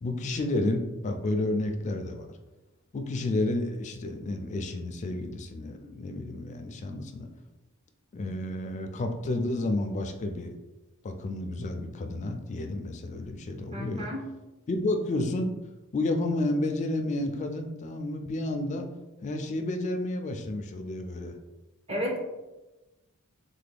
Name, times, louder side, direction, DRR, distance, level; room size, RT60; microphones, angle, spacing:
voice 1, 0.0-2.3 2.9-7.3 8.1-10.5 11.0-14.1 14.7-15.5 15.9-18.9 19.2-21.3, left 2 dB, 30° left, 5 dB, 0.3 m, -31 dB
voice 2, 13.7-14.3 21.9-22.2, equal, 25° right, -2 dB, 0.5 m, -32 dB
3.3 x 2.2 x 3.3 m, 1.1 s
head